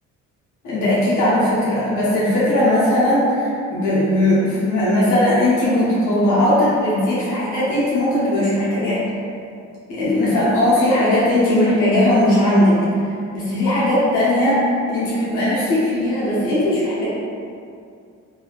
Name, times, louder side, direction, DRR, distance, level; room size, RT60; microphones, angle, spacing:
voice 1, 0.6-9.0 9.9-17.1, left 1 dB, 90° left, -9 dB, 0.9 m, -18 dB
3.1 x 2.7 x 2.4 m, 2.4 s
cardioid pair, 90°, 30 cm